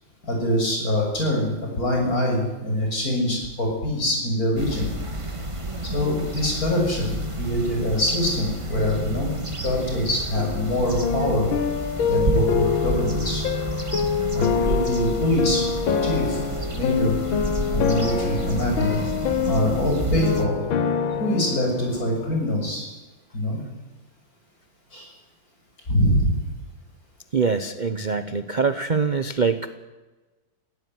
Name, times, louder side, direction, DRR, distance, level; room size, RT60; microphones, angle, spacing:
voice 1, 0.2-4.9 5.9-9.3 9.6-11.5 12.0-13.5 14.3-15.7 16.0-16.4 16.7-17.2 17.7-19.0 19.5-20.6 21.2-22.9 23.3-23.6 24.9-25.1 25.9-26.3, left 1 dB, 45° left, 1 dB, 7.2 m, -24 dB
sound 1, 4.6-20.5, right 2 dB, 15° right, 1.7 m, -30 dB
sound 2, 10.4-22.5, left 6 dB, 85° left, 2.1 m, -26 dB
voice 2, 27.3-29.7, right 5 dB, 40° right, 10 dB, 0.6 m, -24 dB
18.0 x 17.0 x 9.6 m, 1.2 s
omnidirectional pair, 2.1 m